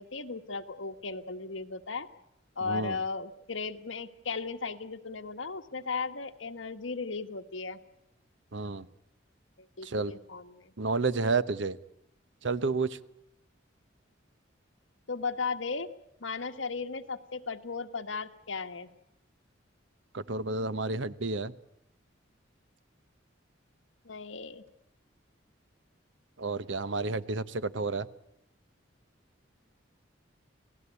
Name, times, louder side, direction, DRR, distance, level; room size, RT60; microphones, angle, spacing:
voice 1, 0.0-2.1 2.5-7.8 9.6-10.7 15.1-15.9 16.2-18.9 24.0-24.6, left 4 dB, 80° left, 8 dB, 1.5 m, -36 dB
voice 2, 2.6-3.0 8.5-8.9 9.8-10.1 10.8-11.8 12.4-13.0 20.1-21.5 26.4-28.1, right 3 dB, 70° right, 15 dB, 0.9 m, -30 dB
28.5 x 17.5 x 8.4 m, 0.83 s
head